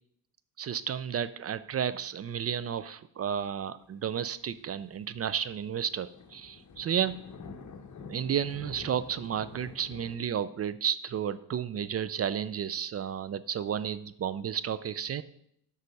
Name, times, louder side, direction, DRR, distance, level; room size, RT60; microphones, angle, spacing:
voice 1, 0.6-7.2 8.1-15.2, right 8 dB, 35° right, 15 dB, 0.4 m, -32 dB
sound 1, 4.0-10.2, left 5 dB, 45° left, 1.0 m, -48 dB
8.2 x 5.5 x 5.3 m, 0.72 s
cardioid pair, 85°, 42 cm